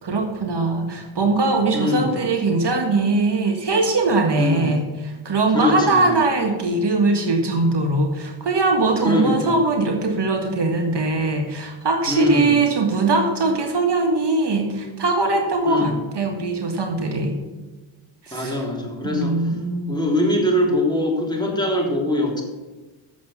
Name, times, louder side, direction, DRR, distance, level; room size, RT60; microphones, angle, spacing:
voice 1, 0.0-17.4 18.2-18.6 19.0-20.0, right 3 dB, 55° right, 4 dB, 1.7 m, -21 dB
voice 2, 1.7-2.1 4.4-4.7 5.5-6.2 9.0-9.6 12.1-12.5 15.6-15.9 18.3-19.3 19.9-22.4, left 1 dB, 10° left, -2 dB, 3.4 m, -22 dB
8.3 x 7.1 x 8.0 m, 1.2 s
cardioid pair, 60°, 50 cm